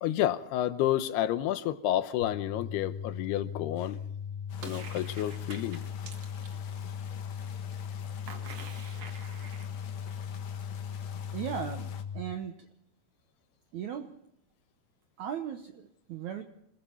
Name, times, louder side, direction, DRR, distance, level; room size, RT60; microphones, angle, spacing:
voice 1, 0.0-4.0 4.6-5.8, left 12 dB, 80° left, 2.9 m, -30 dB
sound 1, 2.2-12.2, left 7 dB, 25° left, 5.0 m, -38 dB
sound 2, 4.5-12.0, left 8 dB, 55° left, 2.2 m, -50 dB
sound 3, 4.6-6.6 8.3-9.7, right 5 dB, 50° right, 2.2 m, -46 dB
voice 2, 11.3-12.6 13.7-14.1 15.2-16.4, right 8 dB, 75° right, 1.8 m, -37 dB
27.5 x 20.5 x 4.5 m
omnidirectional pair, 4.7 m